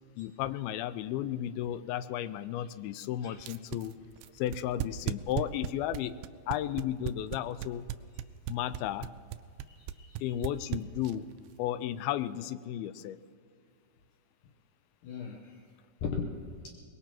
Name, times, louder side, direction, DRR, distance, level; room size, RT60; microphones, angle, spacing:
voice 1, 0.2-3.9 4.3-6.1 6.5-7.9 8.5-9.1 10.2-11.3 11.6-13.2, left 12 dB, 85° left, 14 dB, 2.4 m, -34 dB
sound 1, 3.4-11.3, right 12 dB, 85° right, 2.3 m, -35 dB
voice 2, 9.7-10.5 15.0-15.7 16.0-16.7, left 5 dB, 70° left, 1 dB, 2.3 m, -39 dB
23.0 x 21.0 x 3.0 m, 2.2 s
omnidirectional pair, 4.3 m